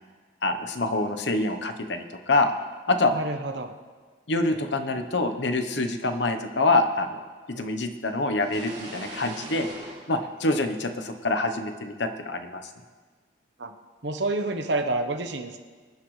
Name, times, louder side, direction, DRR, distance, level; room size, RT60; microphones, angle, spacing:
voice 1, 0.4-2.5 2.9-3.1 4.3-9.7 10.1-12.6, left 2 dB, 70° left, 7 dB, 1.0 m, -26 dB
voice 2, 3.1-3.7 13.6-13.7 14.0-15.6, right 2 dB, 70° right, 5 dB, 1.1 m, -28 dB
sound 1, 8.4-11.2, right 2 dB, 40° right, 2.5 m, -42 dB
25.5 x 10.0 x 3.3 m, 1.5 s
head